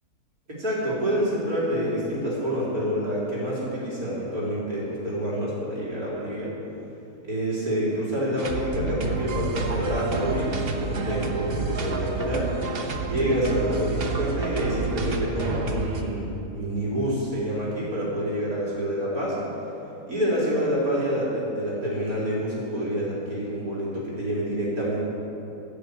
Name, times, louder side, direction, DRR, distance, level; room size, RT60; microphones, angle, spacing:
voice 1, 0.5-6.5 7.3-12.7 13.0-16.3 16.5-19.4 20.1-25.0, equal, 60° right, -7 dB, 4.2 m, -27 dB
sound 1, 8.4-16.0, right 3 dB, 40° right, 1.0 m, -29 dB
15.5 x 7.0 x 8.3 m, 2.9 s
omnidirectional pair, 1.7 m